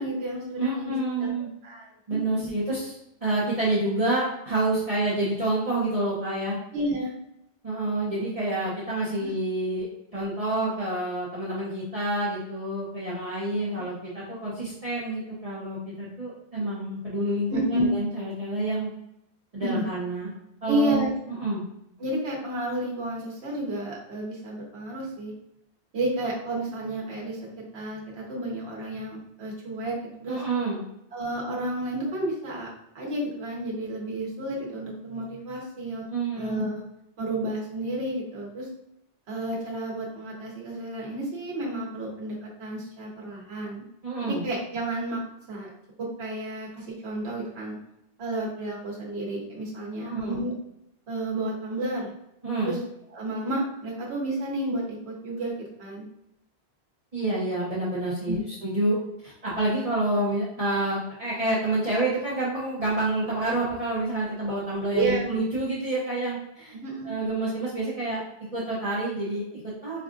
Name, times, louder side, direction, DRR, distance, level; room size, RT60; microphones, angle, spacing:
voice 1, 0.0-1.3 1.6-2.5 6.7-7.1 9.2-9.3 17.5-17.9 19.6-19.8 20.7-21.1 22.0-25.3 25.9-30.4 31.1-32.7 32.9-36.1 36.3-36.8 37.2-38.7 39.3-43.8 44.2-45.7 46.0-47.8 48.2-50.5 51.1-52.1 52.6-52.8 53.1-56.0 58.2-58.4 64.9-65.3 66.7-67.1, right 1 dB, 90° right, -3 dB, 1.1 m, -31 dB
voice 2, 0.6-1.5 2.1-2.9 3.2-6.6 7.6-9.9 10.1-18.9 19.5-20.3 20.6-21.6 30.3-30.8 36.1-36.7 44.0-44.4 50.0-50.4 52.4-52.7 57.1-59.0 59.2-66.7 67.0-68.2 68.5-70.0, right 2 dB, 40° right, -8 dB, 0.9 m, -28 dB
4.5 x 2.3 x 2.5 m, 0.80 s
omnidirectional pair, 1.0 m